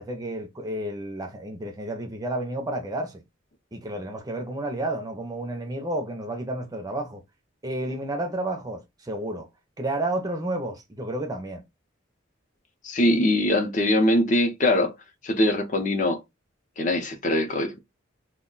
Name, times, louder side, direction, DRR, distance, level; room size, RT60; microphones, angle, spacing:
voice 1, 0.0-3.2 3.7-7.2 7.6-9.5 9.8-11.6, right 1 dB, 20° right, 0.5 m, -31 dB
voice 2, 12.8-14.9 15.2-16.2 16.8-17.8, left 1 dB, 40° left, 0.6 m, -22 dB
2.3 x 2.2 x 3.7 m
head